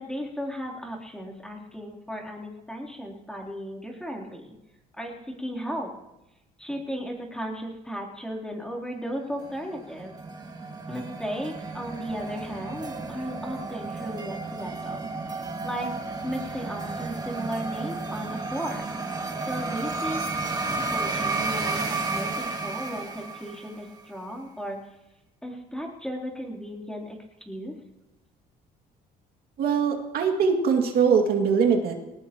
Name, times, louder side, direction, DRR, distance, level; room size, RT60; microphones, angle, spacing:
voice 1, 0.0-4.5 5.0-5.9 6.6-10.2 10.9-15.1 15.6-15.9 16.2-18.8 19.3-20.2 20.7-24.8 25.4-27.2 27.4-27.7, equal, 5° left, 0 dB, 3.4 m, -35 dB
sound 1, 9.3-23.9, right 3 dB, 25° right, 2.1 m, -32 dB
voice 2, 29.6-31.9, right 6 dB, 65° right, 2 dB, 2.3 m, -22 dB
21.0 x 19.0 x 3.0 m, 0.91 s
cardioid pair, 110°, 17 cm